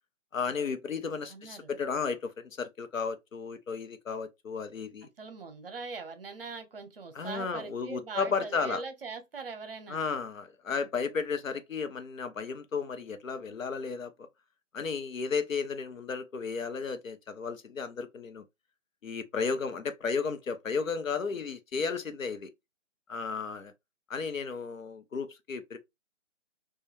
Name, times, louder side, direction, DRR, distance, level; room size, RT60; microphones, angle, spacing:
voice 1, 0.3-5.1 7.1-8.8 9.9-14.3 14.7-18.4 19.0-22.5 23.1-23.7 24.1-25.8, left 5 dB, 85° left, 0.6 m, -34 dB
voice 2, 1.3-1.7 5.2-10.0, right 4 dB, 50° right, 0.6 m, -41 dB
2.2 x 2.2 x 3.1 m
figure-of-eight pair, 145°, 39 cm